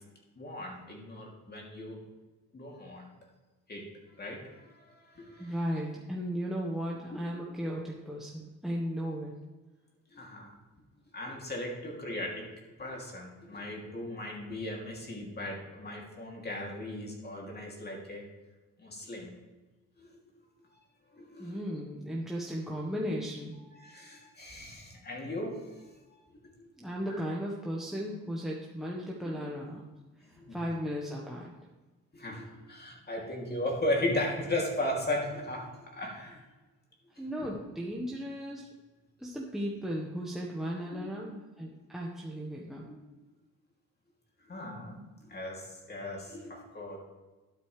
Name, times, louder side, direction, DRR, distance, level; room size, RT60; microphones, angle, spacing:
voice 1, 0.4-2.0 2.5-3.1 3.7-3.8 4.2-5.6 7.1-7.3 10.1-10.5 11.1-12.4 12.8-18.2 18.8-19.3 20.0-20.2 21.1-21.6 23.7-26.2 26.6-26.7 29.2-29.5 30.4-30.6 32.1-36.4 37.2-37.5 40.9-41.1 42.8-42.9 44.4-47.0, left 1 dB, 35° left, -1 dB, 2.9 m, -37 dB
voice 2, 5.4-9.3 21.4-23.6 26.8-29.9 30.5-31.5 37.2-38.7 39.2-42.9, equal, ahead, -3 dB, 1.4 m, -36 dB
11.5 x 9.3 x 3.3 m, 1.2 s
cardioid pair, 90°, 30 cm